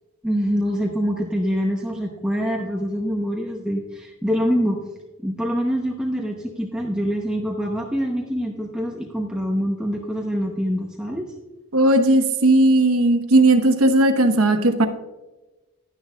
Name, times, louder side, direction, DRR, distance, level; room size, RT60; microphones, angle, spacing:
voice 1, 0.2-4.8 5.2-11.3, equal, 5° right, -1 dB, 0.7 m, -25 dB
voice 2, 11.7-14.9, right 2 dB, 75° right, 6 dB, 1.1 m, -16 dB
11.5 x 10.5 x 2.3 m, 1.1 s
head